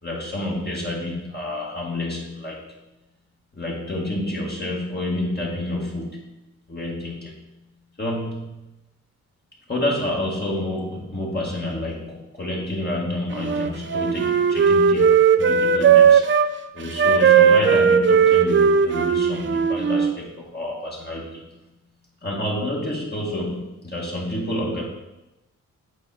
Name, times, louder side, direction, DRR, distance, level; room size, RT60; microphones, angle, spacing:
voice 1, 0.0-2.6 3.5-6.3 6.7-7.4 8.0-8.7 9.7-16.5 16.7-21.4 22.2-24.8, left 1 dB, 30° left, -4 dB, 1.8 m, -29 dB
Wind instrument woodwind instrument, 13.4-16.5 17.0-20.1, right 6 dB, 40° right, 0.5 m, -17 dB
8.5 x 4.1 x 4.3 m, 1.0 s
cardioid pair, 70°, 32 cm